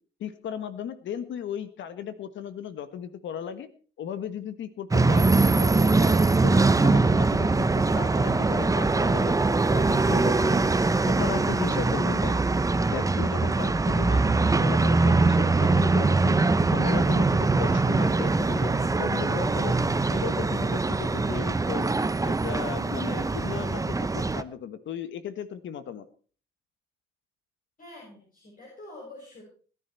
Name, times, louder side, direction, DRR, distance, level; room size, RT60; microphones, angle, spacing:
voice 1, 0.2-3.7 4.0-6.0 6.4-10.7 11.0-12.3 12.9-16.4 16.7-19.8 20.1-21.9 22.2-26.0, left 8 dB, 70° left, 12 dB, 1.5 m, -36 dB
sound 1, 4.9-24.4, right 3 dB, 15° right, 0.8 m, -22 dB
voice 2, 27.8-29.4, left 2 dB, 45° left, -3 dB, 7.4 m, -46 dB
21.0 x 10.5 x 4.5 m, 0.40 s
cardioid pair, 90°, 20 cm